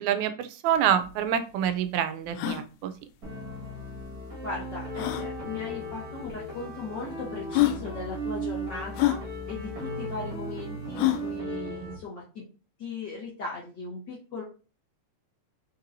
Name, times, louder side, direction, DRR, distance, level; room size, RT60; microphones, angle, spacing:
voice 1, 0.0-2.9, right 9 dB, 90° right, 11 dB, 2.0 m, -26 dB
sound 1, 0.8-0.9 1.0-1.1 1.7-1.8 2.3-2.6 4.0-4.1 4.9-5.3 6.3-6.4 7.1-7.2 7.5-7.8 8.9-9.2 11.0-11.3, left 15 dB, 85° left, 2.0 m, -26 dB
sound 2, 3.2-12.0, right 1 dB, 35° right, 1.8 m, -36 dB
voice 2, 4.4-9.2 9.5-12.4 12.8-14.4, left 3 dB, 60° left, -5 dB, 1.2 m, -38 dB
4.5 x 4.1 x 2.6 m, 0.34 s
omnidirectional pair, 3.3 m